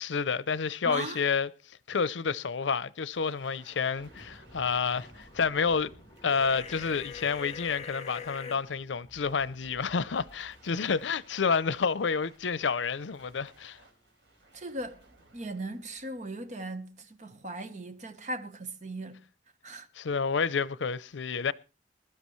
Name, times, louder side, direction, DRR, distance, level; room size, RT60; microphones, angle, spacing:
voice 1, 0.0-5.9 6.2-13.8 20.0-21.5, left 5 dB, 90° left, 0.6 m, -29 dB
voice 2, 0.8-1.2 14.5-15.0 15.3-19.2 19.6-19.9, right 2 dB, 40° right, 1.1 m, -38 dB
sound 1, 3.1-17.0, right 2 dB, 80° right, 3.7 m, -60 dB
sound 2, 3.9-15.5, equal, 20° left, 3.2 m, -57 dB
sound 3, 6.3-8.6, left 6 dB, 35° left, 0.9 m, -42 dB
21.0 x 12.0 x 3.1 m
head